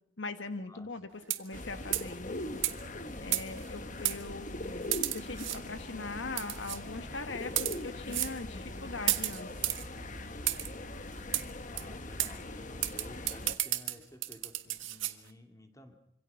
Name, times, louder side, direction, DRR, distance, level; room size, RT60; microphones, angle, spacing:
voice 1, 0.2-2.4 3.2-9.5, left 3 dB, 75° left, 9 dB, 1.5 m, -41 dB
sound 1, 1.2-1.6 1.9-2.1 2.6-2.7 3.3-3.7 4.0-4.2 4.9-5.6 6.4-6.8 7.4-7.8 8.1-8.3 9.1-9.8 10.5-10.7 11.3-11.4 11.8-11.9 12.2-12.3 12.8-15.1, right 15 dB, 85° right, 1.6 m, -32 dB
sound 2, 1.5-13.5, left 1 dB, 40° left, 1.4 m, -41 dB
voice 2, 11.7-15.9, left 1 dB, 15° left, 5 dB, 2.9 m, -53 dB
26.0 x 25.5 x 5.8 m, 0.73 s
head